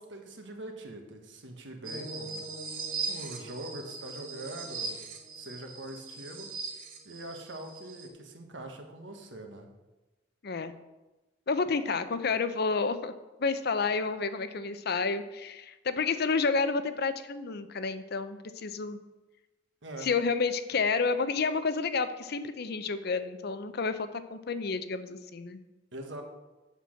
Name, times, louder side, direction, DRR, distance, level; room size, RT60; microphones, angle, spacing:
voice 1, 0.0-2.4 3.1-5.0 5.4-6.5 7.0-9.7 19.8-20.1 25.9-26.2, right 1 dB, 70° right, 3 dB, 1.5 m, -43 dB
sound 1, 1.8-8.1, right 4 dB, 50° right, 1.3 m, -39 dB
voice 2, 11.5-13.1 13.4-19.0 20.0-25.6, left 4 dB, 60° left, 11 dB, 0.6 m, -30 dB
8.2 x 6.0 x 6.5 m, 1.1 s
head